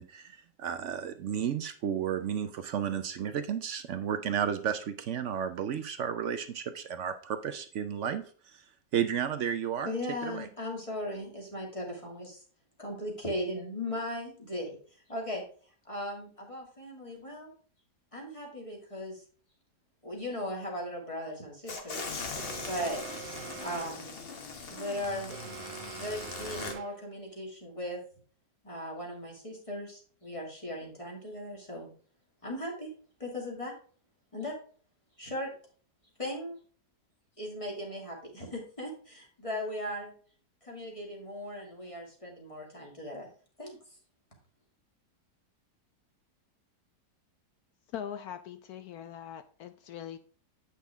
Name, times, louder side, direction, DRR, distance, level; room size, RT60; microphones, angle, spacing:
voice 1, 0.0-8.6 8.9-9.9 10.2-10.5, right 8 dB, 65° right, 0.7 m, -33 dB
voice 2, 9.8-12.4 12.8-15.4 15.8-17.5 18.1-19.2 20.0-22.1 22.6-23.0 23.6-24.2 24.7-25.3 25.9-28.0 28.6-31.9 32.4-32.9 33.2-33.7 34.3-34.5 35.2-35.5 36.2-36.6 37.4-40.1 40.6-43.3 43.6-43.8, left 1 dB, 20° left, 2.3 m, -38 dB
sound 1, 21.7-26.7, left 4 dB, 40° left, 1.1 m, -40 dB
Alarm, 22.4-24.1 25.3-27.1, right 13 dB, 85° right, 1.2 m, -45 dB
voice 3, 47.9-50.2, left 9 dB, 70° left, 1.0 m, -41 dB
8.2 x 5.9 x 3.5 m
omnidirectional pair, 1.8 m